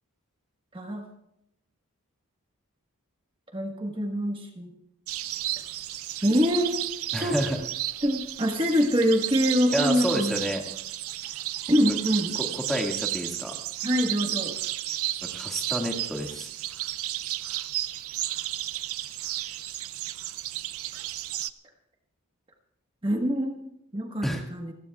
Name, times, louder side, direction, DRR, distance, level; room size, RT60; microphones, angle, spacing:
voice 1, 3.5-4.7 6.2-6.8 7.2-7.4 8.0-10.4 11.7-12.4 13.8-14.5 23.0-24.7, equal, 25° right, 2 dB, 1.4 m, -25 dB
sound 1, 5.1-21.5, right 14 dB, 70° right, 0.5 m, -33 dB
voice 2, 7.1-7.6 9.7-10.6 12.4-13.5 15.3-16.5 24.2-24.4, equal, ahead, 0 dB, 2.0 m, -29 dB
28.5 x 16.0 x 2.4 m, 0.80 s
head